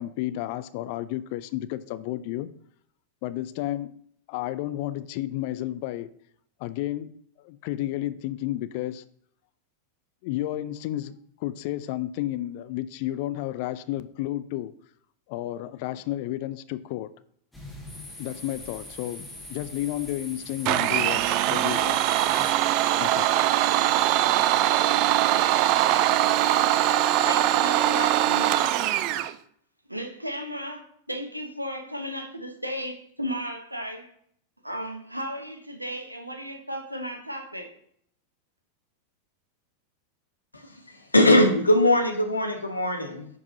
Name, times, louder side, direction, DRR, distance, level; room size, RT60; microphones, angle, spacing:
voice 1, 0.0-2.5 3.2-3.9 4.3-6.1 6.6-7.1 7.4-9.0 10.2-14.7 15.3-17.1 18.2-19.2 19.5-22.0 23.0-23.3, left 14 dB, 45° left, 15 dB, 0.4 m, -32 dB
sound 1, 17.5-22.5, left 1 dB, 5° left, 2.0 m, -42 dB
Domestic sounds home sounds, 20.6-29.3, right 13 dB, 45° right, 0.4 m, -22 dB
voice 2, 27.3-28.8 29.9-34.1 34.6-37.7, equal, 85° right, 5 dB, 1.0 m, -34 dB
voice 3, 40.9-43.3, left 1 dB, 80° left, 5 dB, 1.1 m, -20 dB
9.5 x 4.7 x 2.8 m, 0.66 s
figure-of-eight pair, 90°, 0 cm